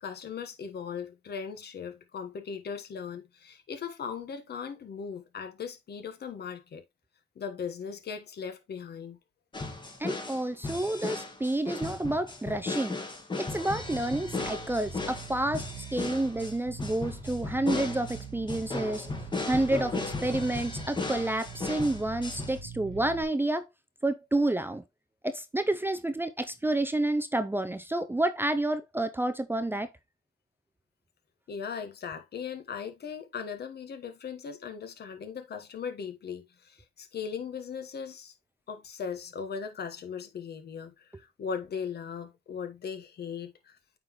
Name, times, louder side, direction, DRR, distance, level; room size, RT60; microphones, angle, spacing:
voice 1, 0.0-6.8 7.4-9.2 31.5-38.3 38.7-43.8, left 6 dB, 55° left, 1.3 m, -38 dB
sound 1, 9.5-22.6, left 3 dB, 25° left, 1.5 m, -36 dB
voice 2, 10.0-13.0 13.4-19.1 19.4-23.7 24.0-24.8 25.2-29.9, right 1 dB, 10° right, 0.5 m, -29 dB
Bass guitar, 13.6-23.2, right 6 dB, 70° right, 1.4 m, -44 dB
8.7 x 3.8 x 3.0 m
cardioid pair, 90°, 20 cm